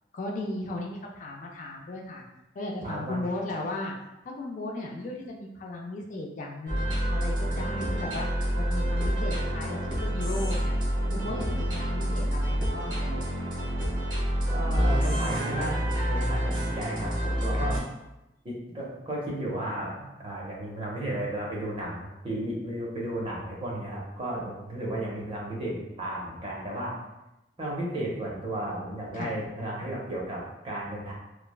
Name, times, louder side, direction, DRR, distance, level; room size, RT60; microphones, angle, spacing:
voice 1, 0.1-2.2 2.6-3.9 4.4-8.3 8.6-10.7 11.1-13.2 17.6-17.7 29.1-29.3, left 2 dB, 45° left, -1 dB, 0.3 m, -36 dB
voice 2, 2.8-3.3 14.5-17.8 18.4-26.9 27.6-31.1, right 1 dB, 30° right, -4 dB, 0.6 m, -34 dB
sound 1, 6.7-17.8, equal, 50° right, 1.1 m, -28 dB
3.1 x 2.0 x 2.3 m, 0.95 s
head